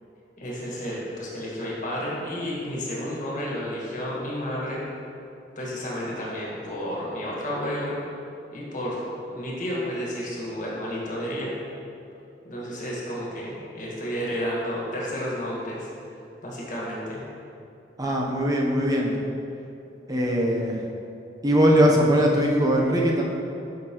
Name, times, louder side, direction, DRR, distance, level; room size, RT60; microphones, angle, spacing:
voice 1, 0.4-4.8 5.5-8.0 8.5-11.5 12.4-15.9 16.4-17.2, equal, 45° left, -5 dB, 1.6 m, -31 dB
voice 2, 18.0-19.2 20.1-20.8 21.4-23.2, equal, 20° right, -1 dB, 0.7 m, -21 dB
8.1 x 6.1 x 3.0 m, 2.7 s
head